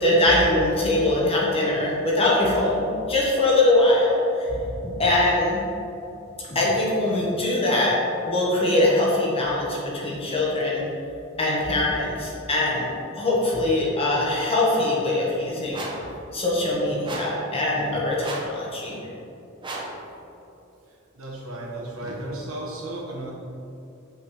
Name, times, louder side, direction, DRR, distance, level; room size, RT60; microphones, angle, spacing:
voice 1, 0.0-5.6 6.5-7.9 8.2-10.8 11.4-12.9 13.1-15.9 16.3-19.0, left 1 dB, 30° left, -5 dB, 1.2 m, -22 dB
sound 1, 15.7-16.1 17.0-17.4 18.2-18.6 19.6-20.0, right 2 dB, 25° right, 0.7 m, -34 dB
voice 2, 21.1-23.3, right 1 dB, 80° right, -4 dB, 1.3 m, -34 dB
5.9 x 5.3 x 3.2 m, 2.8 s
head